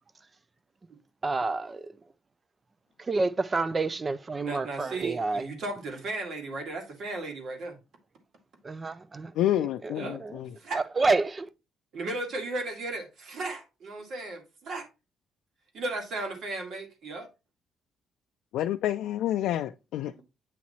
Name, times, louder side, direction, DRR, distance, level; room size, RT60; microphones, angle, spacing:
voice 1, 1.2-1.9 3.0-5.5 8.6-9.3 9.6-10.4 10.7-11.5, right 3 dB, 30° right, 0.3 m, -29 dB
voice 2, 4.4-7.8 9.9-10.2 10.6-10.8 11.9-14.9 15.7-17.3 20.2-20.3, right 2 dB, 65° right, 1.8 m, -35 dB
voice 3, 9.4-10.5 18.5-20.1, left 12 dB, 85° left, 0.3 m, -28 dB
8.3 x 3.0 x 4.1 m
cardioid pair, 90°, 0 cm